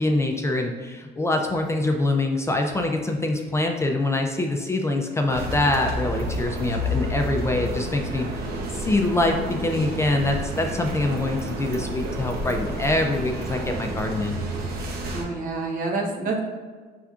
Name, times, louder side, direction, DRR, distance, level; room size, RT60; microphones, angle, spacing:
voice 1, 0.0-14.4, left 2 dB, 15° left, 3 dB, 0.4 m, -24 dB
sound 1, 5.3-15.2, equal, 70° right, 0.8 m, -30 dB
voice 2, 15.1-16.4, right 3 dB, 55° right, 0 dB, 1.0 m, -27 dB
5.7 x 3.4 x 2.4 m, 1.5 s
cardioid pair, 110°, 17 cm